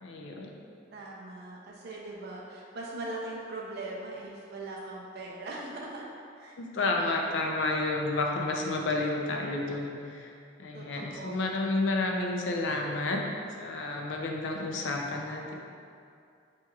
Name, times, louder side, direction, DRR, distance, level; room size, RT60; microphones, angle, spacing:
voice 1, 0.0-0.5 6.6-10.3 10.6-13.2 13.6-15.5, left 2 dB, 65° left, 1 dB, 0.4 m, -30 dB
voice 2, 0.9-6.1 6.4-6.6 10.7-11.6, right 2 dB, 55° right, -3 dB, 0.5 m, -40 dB
4.5 x 2.9 x 2.3 m, 2.4 s
head